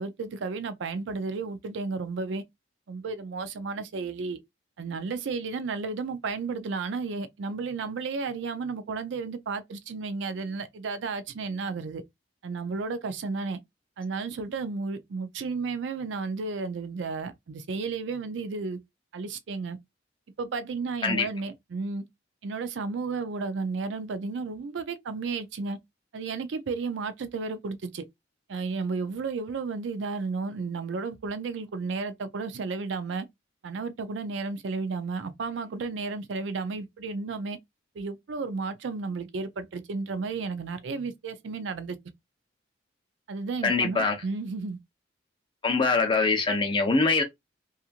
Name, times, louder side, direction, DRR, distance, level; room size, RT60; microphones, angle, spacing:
voice 1, 0.0-2.4 2.9-4.4 4.8-12.0 12.4-13.6 14.0-18.8 19.1-19.8 20.4-22.0 22.4-25.8 26.1-28.0 28.5-33.3 33.6-37.6 38.0-42.0 43.3-44.8, right 4 dB, 70° right, 0.4 m, -33 dB
voice 2, 43.6-44.2 45.6-47.2, left 3 dB, 25° left, 0.7 m, -23 dB
2.8 x 2.4 x 2.4 m
head